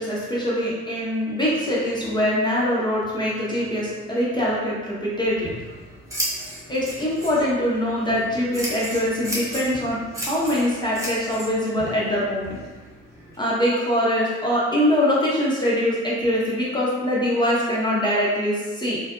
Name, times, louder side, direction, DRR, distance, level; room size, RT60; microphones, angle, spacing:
voice 1, 0.0-5.5 6.7-12.6 13.4-19.0, equal, 10° left, -7 dB, 0.7 m, -23 dB
Scissors, 5.2-13.4, equal, 10° right, 0.9 m, -35 dB
2.5 x 2.5 x 2.3 m, 1.3 s
figure-of-eight pair, 45°, 38 cm